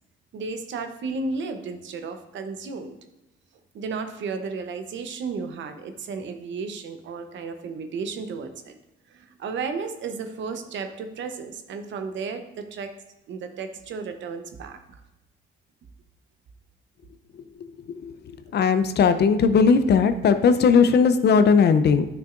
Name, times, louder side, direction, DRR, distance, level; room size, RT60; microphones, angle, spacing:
voice 1, 0.3-3.0 3.7-8.7 9.1-12.9 13.3-15.0 18.5-18.6, right 4 dB, 70° right, 7 dB, 0.9 m, -33 dB
voice 2, 18.5-22.1, left 5 dB, 55° left, 10 dB, 0.6 m, -18 dB
10.0 x 6.1 x 2.5 m, 0.99 s
cardioid pair, 90°, 20 cm